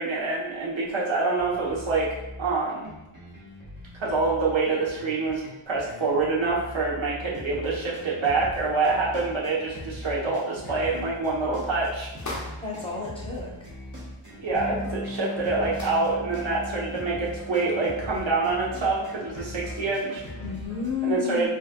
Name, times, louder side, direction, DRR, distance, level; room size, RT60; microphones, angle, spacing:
voice 1, 0.0-2.1 2.4-2.9 3.9-12.1 14.4-20.2 21.0-21.5, right 3 dB, 65° right, -5 dB, 1.0 m, -26 dB
sound 1, 1.3-20.9, left 1 dB, 40° right, 1.0 m, -41 dB
sound 2, 12.1-12.7 14.6-14.7 14.9-15.0 15.7-16.1, left 1 dB, 35° left, 0.7 m, -37 dB
voice 2, 12.6-13.7 20.4-21.5, left 5 dB, 10° left, -5 dB, 0.9 m, -31 dB
Bass guitar, 14.5-20.8, equal, 5° right, 0.5 m, -41 dB
4.0 x 2.6 x 2.2 m, 0.97 s
wide cardioid pair, 85°, 50 cm